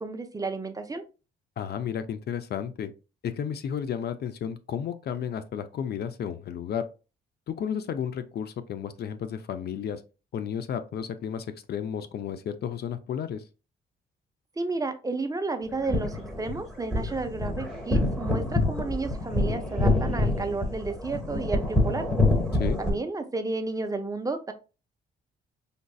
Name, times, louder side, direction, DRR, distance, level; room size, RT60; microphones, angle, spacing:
voice 1, 0.0-1.0 14.6-22.0 22.8-24.5, right 3 dB, 15° right, 0.6 m, -32 dB
voice 2, 1.6-2.9 3.2-6.8 7.5-10.0 10.3-13.4 22.5-22.8, left 8 dB, 55° left, 0.5 m, -32 dB
sound 1, 15.7-22.9, left 2 dB, 5° left, 1.3 m, -26 dB
5.1 x 2.5 x 2.3 m
cardioid pair, 90°, 20 cm